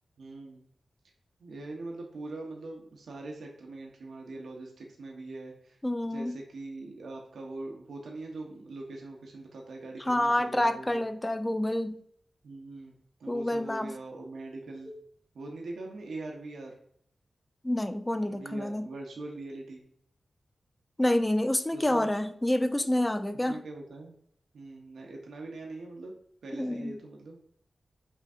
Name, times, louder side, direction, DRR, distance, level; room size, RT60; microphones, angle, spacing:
voice 1, 0.2-0.6 1.4-5.8 6.0-11.0 12.4-14.9 15.3-16.7 18.3-19.8 21.7-22.1 23.5-24.1 24.5-26.2 26.4-27.4, right 2 dB, 85° right, 0 dB, 0.7 m, -42 dB
voice 2, 5.8-6.4 10.1-12.0 13.3-13.9 14.9-15.0 17.6-18.9 21.0-23.6 26.5-26.9, left 1 dB, 20° left, 9 dB, 0.4 m, -28 dB
5.5 x 2.6 x 2.4 m, 0.65 s
cardioid pair, 50°, 0 cm